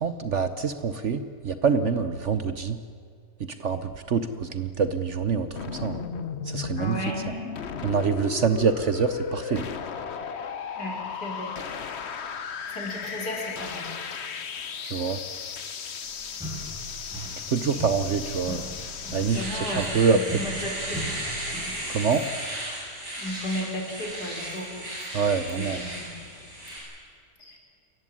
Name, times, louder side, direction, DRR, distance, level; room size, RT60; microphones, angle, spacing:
voice 1, 0.0-2.8 3.6-6.0 6.5-7.0 7.8-9.7 14.8-15.2 17.5-18.7 19.1-20.2 21.9-22.2 25.1-25.8, right 5 dB, 50° right, 11 dB, 1.0 m, -25 dB
sound 1, 5.6-19.5, left 6 dB, 45° left, 1.1 m, -35 dB
voice 2, 6.8-7.2 10.8-11.5 12.7-13.9 18.5-18.6 19.3-19.9 20.1-21.2 22.1-22.2 23.2-24.7 25.5-26.1 27.4-27.6, left 1 dB, 70° left, 0 dB, 5.0 m, -34 dB
sound 2, 16.0-16.1 16.4-17.5 17.7-21.9, right 1 dB, ahead, 7.2 m, -38 dB
Domestic sounds home sounds, 19.0-26.8, right 1 dB, 80° right, 8.2 m, -35 dB
27.0 x 15.0 x 9.9 m, 2.2 s
omnidirectional pair, 1.8 m